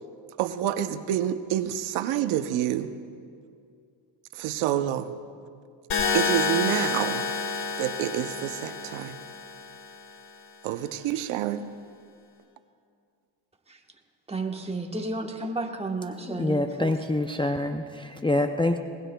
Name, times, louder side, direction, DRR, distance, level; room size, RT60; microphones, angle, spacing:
voice 1, 0.4-2.9 4.3-5.1 6.1-7.2 7.8-9.2 10.6-11.6, right 11 dB, 85° right, 10 dB, 0.8 m, -28 dB
sound 1, 5.9-9.9, left 5 dB, 80° left, 3.3 m, -29 dB
voice 2, 14.3-17.0, right 2 dB, 15° right, 3 dB, 1.2 m, -32 dB
voice 3, 16.3-18.8, left 2 dB, 10° left, 5 dB, 0.4 m, -26 dB
21.0 x 20.0 x 2.2 m, 2.3 s
cardioid pair, 95°, 48 cm